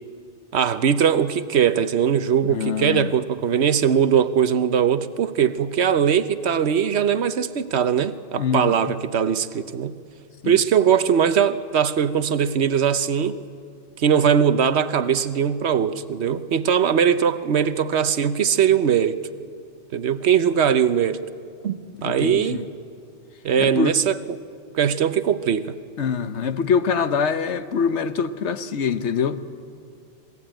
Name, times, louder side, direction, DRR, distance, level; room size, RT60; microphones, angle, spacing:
voice 1, 0.5-9.9 10.4-13.4 14.0-19.2 19.9-21.2 21.6-22.6 23.4-24.4 24.7-25.8, right 8 dB, 70° right, 13 dB, 1.1 m, -20 dB
voice 2, 2.5-3.1 8.4-8.8 10.4-10.6 22.0-22.7 23.6-23.9 26.0-29.4, left 6 dB, 75° left, 11 dB, 1.2 m, -24 dB
26.5 x 19.5 x 9.0 m, 2.4 s
omnidirectional pair, 1.2 m